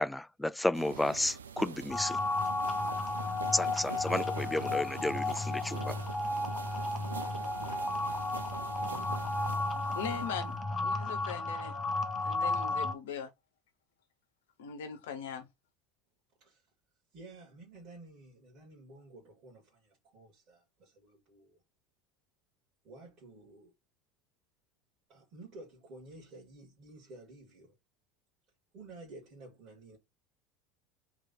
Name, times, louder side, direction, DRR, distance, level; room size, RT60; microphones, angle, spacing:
voice 1, 0.0-2.2 3.5-6.0, left 1 dB, 5° left, 0.4 m, -32 dB
sound 1, 0.7-10.6, right 6 dB, 80° right, 0.4 m, -44 dB
sound 2, 1.9-12.9, left 2 dB, 25° left, 0.8 m, -33 dB
voice 2, 9.7-11.8 12.2-13.3 14.6-15.5, left 7 dB, 70° left, 0.9 m, -40 dB
voice 3, 17.1-21.6 22.8-23.7 25.1-27.8 28.7-30.0, right 2 dB, 45° right, 2.4 m, -52 dB
3.9 x 3.2 x 4.2 m
figure-of-eight pair, 70°, 0 cm